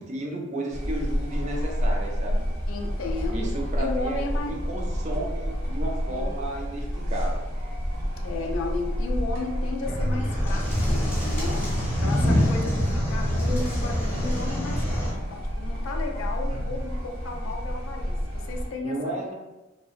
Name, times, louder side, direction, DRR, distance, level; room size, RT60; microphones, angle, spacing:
voice 1, 0.0-2.5 3.3-7.4 18.8-19.3, right 1 dB, 35° right, -1 dB, 0.4 m, -33 dB
sound 1, 0.7-18.7, equal, 75° right, 0.7 m, -29 dB
voice 2, 2.7-3.5 3.8-4.6 5.1-5.3 6.1-6.3 8.2-11.6 12.0-19.2, left 3 dB, 75° left, 3 dB, 0.4 m, -34 dB
sound 2, 9.9-15.1, equal, 10° left, 0.7 m, -26 dB
2.6 x 2.1 x 2.4 m, 1.0 s
head